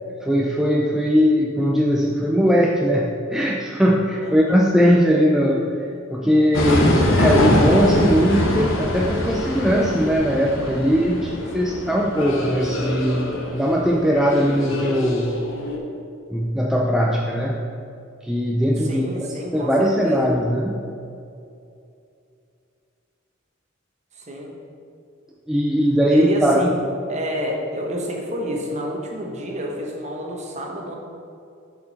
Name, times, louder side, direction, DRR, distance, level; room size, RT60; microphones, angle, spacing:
voice 1, 0.2-15.5 16.3-17.7 18.2-20.9 25.5-26.7, equal, ahead, -1 dB, 0.4 m, -20 dB
voice 2, 4.2-4.6 18.8-20.2 24.1-24.6 26.1-26.8 27.1-31.0, equal, 35° right, 0 dB, 1.1 m, -29 dB
sound 1, 6.5-15.8, left 1 dB, 70° left, 0.9 m, -23 dB
7.9 x 5.1 x 4.0 m, 2.6 s
head